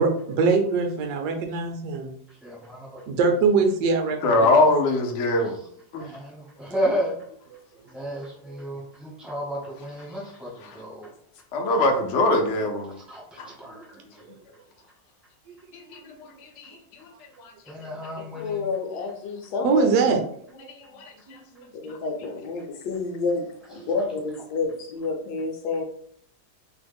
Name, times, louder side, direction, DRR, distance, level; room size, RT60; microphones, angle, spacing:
voice 1, 0.0-2.2 3.1-4.6 7.5-7.6 8.5-8.6 9.5-9.6 13.4-13.8 14.3-14.4 15.5-15.6 16.0-16.2 19.6-20.2 20.5-20.7 21.3-21.7, right 4 dB, 70° right, 4 dB, 1.1 m, -24 dB
voice 2, 2.4-2.8 6.1-7.1 7.9-10.5 10.7-11.1 13.1-13.2 13.6-13.8 17.7-18.6, equal, ahead, -6 dB, 0.4 m, -31 dB
voice 3, 4.2-5.5 5.9-6.0 10.6-10.8 11.5-13.0 13.4-13.5 15.7-16.1 16.4-16.7 17.4-17.5 20.7-21.4, left 2 dB, 90° left, 2 dB, 0.6 m, -23 dB
voice 4, 18.4-19.8 21.8-25.8, left 4 dB, 75° left, 3 dB, 1.1 m, -29 dB
3.1 x 2.1 x 3.4 m, 0.64 s
omnidirectional pair, 2.0 m